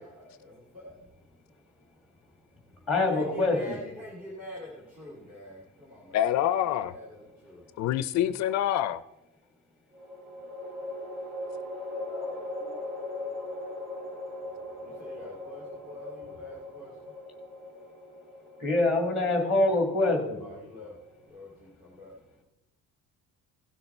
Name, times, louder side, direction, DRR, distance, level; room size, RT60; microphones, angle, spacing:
voice 1, 0.0-7.7 14.5-17.1 20.4-22.4, left 1 dB, 25° right, 2.4 m, -47 dB
voice 2, 2.9-3.8 12.1-12.3 12.7-12.8 18.6-20.4, left 2 dB, ahead, 1.8 m, -25 dB
voice 3, 6.1-6.9 7.8-9.0, left 11 dB, 55° left, 0.4 m, -26 dB
sound 1, 7.0-7.7 9.9-21.2, left 2 dB, 65° right, 4.8 m, -40 dB
16.5 x 6.8 x 4.2 m
cardioid pair, 180°, 33 cm